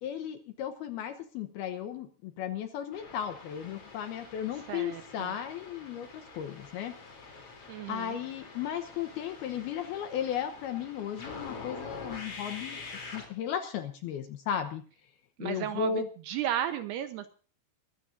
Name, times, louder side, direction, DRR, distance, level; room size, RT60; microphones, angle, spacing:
voice 1, 0.0-6.9 7.9-12.8 13.1-14.8 15.4-16.1, left 9 dB, 70° left, 8 dB, 2.5 m, -35 dB
sound 1, 2.9-13.3, left 4 dB, 35° left, 3.8 m, -46 dB
voice 2, 4.7-5.3 7.7-8.2 15.4-15.9 16.3-17.3, right 11 dB, 75° right, 9 dB, 2.7 m, -34 dB
22.5 x 15.0 x 2.7 m, 0.40 s
omnidirectional pair, 5.4 m